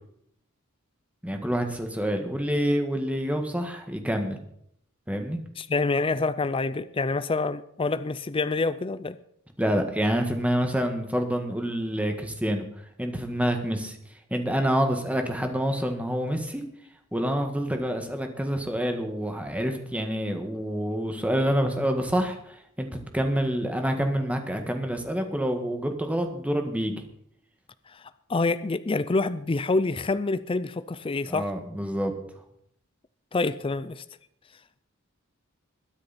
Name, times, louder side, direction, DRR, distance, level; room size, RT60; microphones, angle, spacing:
voice 1, 1.2-4.4 5.1-5.4 9.6-12.7 13.0-14.0 14.3-16.6 17.1-27.0 31.3-32.1, equal, 5° right, 5 dB, 1.7 m, -27 dB
voice 2, 5.6-9.2 27.9-28.0 28.3-31.5 33.3-34.0, left 3 dB, 25° left, 14 dB, 0.4 m, -27 dB
21.0 x 9.7 x 4.3 m, 0.70 s
head